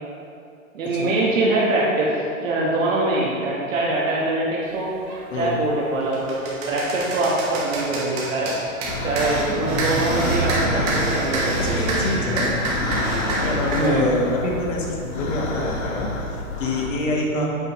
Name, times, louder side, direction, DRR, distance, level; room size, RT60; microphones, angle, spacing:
voice 1, 0.7-2.1 2.4-4.9 5.3-8.6 9.0-10.8 11.1-11.7 13.8-14.1 17.3-17.5, right 2 dB, 65° right, -4 dB, 1.3 m, -23 dB
sound 1, 5.1-5.2 5.8-14.0, right 2 dB, 30° right, 1.0 m, -26 dB
sound 2, 8.8-16.9, left 2 dB, 85° left, 1.3 m, -29 dB
voice 2, 11.6-12.5 13.4-17.5, left 2 dB, 60° left, -1 dB, 1.3 m, -26 dB
7.9 x 5.2 x 3.0 m, 2.4 s
hypercardioid pair, 165°, 42 cm